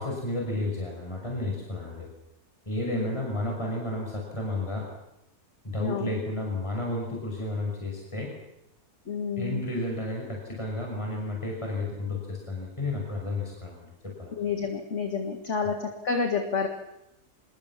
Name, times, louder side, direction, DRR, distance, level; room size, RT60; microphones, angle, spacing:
voice 1, 0.0-2.1 2.7-4.9 5.6-8.3 9.4-13.7 14.0-14.4, left 1 dB, 20° left, -1 dB, 5.9 m, -32 dB
voice 2, 5.8-6.1 9.1-9.7 14.3-16.7, left 5 dB, 45° left, 4 dB, 2.2 m, -29 dB
26.0 x 21.5 x 7.4 m, 0.88 s
omnidirectional pair, 1.7 m